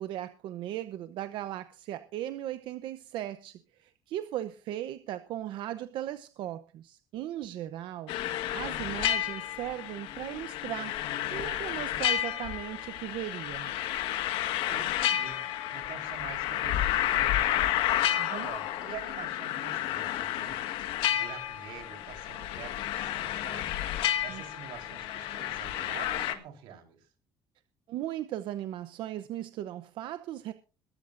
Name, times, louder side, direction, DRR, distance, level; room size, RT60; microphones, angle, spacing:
voice 1, 0.0-11.0 11.3-14.0 18.2-18.5 24.3-24.4 27.9-30.5, right 12 dB, 65° right, 0.8 m, -37 dB
sound 1, 8.1-26.3, left 12 dB, 85° left, 1.6 m, -31 dB
voice 2, 14.7-17.7 18.3-20.6 21.1-23.7 24.2-27.1, right 8 dB, 90° right, 4.2 m, -46 dB
22.0 x 13.5 x 2.6 m
cardioid pair, 150°, 9 cm